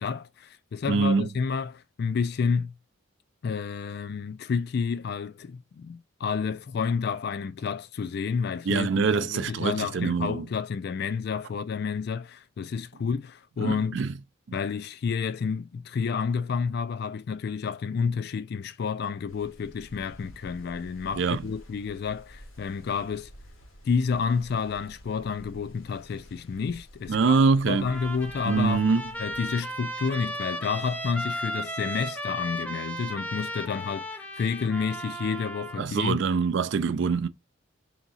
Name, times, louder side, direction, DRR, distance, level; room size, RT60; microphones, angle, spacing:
voice 1, 0.0-2.7 3.4-14.0 14.5-23.3 23.8-27.4 27.7-28.9 29.2-36.2, left 5 dB, 50° left, 0.3 m, -30 dB
voice 2, 0.9-1.3 8.7-10.5 13.6-14.1 21.1-21.4 27.1-27.9 28.4-29.0 35.8-37.3, right 5 dB, 60° right, 0.4 m, -24 dB
sound 1, 19.3-29.5, equal, 90° left, 1.3 m, -50 dB
Trumpet, 27.7-35.9, equal, 5° left, 0.7 m, -35 dB
3.5 x 2.9 x 4.0 m
head